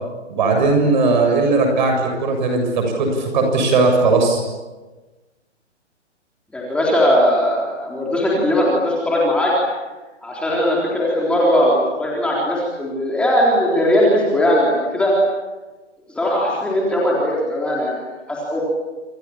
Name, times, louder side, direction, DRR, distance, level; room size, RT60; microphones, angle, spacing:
voice 1, 0.3-4.4, right 3 dB, 40° right, 3 dB, 7.5 m, -17 dB
voice 2, 6.5-9.5 10.2-15.1 16.1-18.6, equal, 5° left, -4 dB, 3.9 m, -19 dB
29.0 x 28.0 x 7.3 m, 1.2 s
hypercardioid pair, 160°, 36 cm